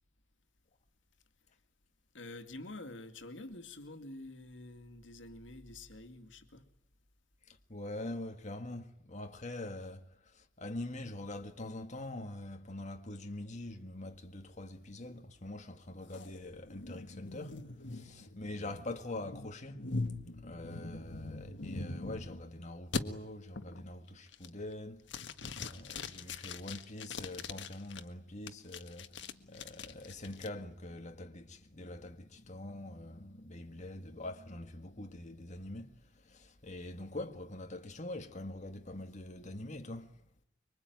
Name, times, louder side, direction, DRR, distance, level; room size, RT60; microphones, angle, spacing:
voice 1, 2.1-6.7, left 2 dB, 90° left, 2.4 m, -48 dB
voice 2, 7.5-19.9 20.4-25.0 25.6-35.9 36.1-40.1, left 1 dB, 40° left, 1.9 m, -44 dB
sound 1, 16.1-22.4 22.9-23.0 23.5-23.9 24.3-24.7 25.1-28.0 28.5-30.5, left 3 dB, 70° left, 1.7 m, -42 dB
25.5 x 24.5 x 9.4 m
head